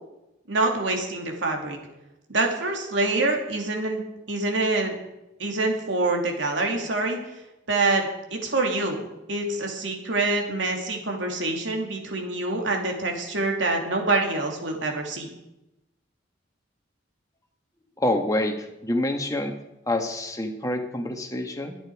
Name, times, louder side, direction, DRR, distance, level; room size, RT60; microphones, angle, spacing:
voice 1, 0.5-1.8 2.3-4.0 4.3-4.9 5.4-7.2 7.7-15.3, right 2 dB, 75° right, 1 dB, 2.8 m, -26 dB
voice 2, 18.0-19.5 19.9-21.8, left 1 dB, 20° left, 4 dB, 1.5 m, -27 dB
22.0 x 9.1 x 4.8 m, 0.93 s
head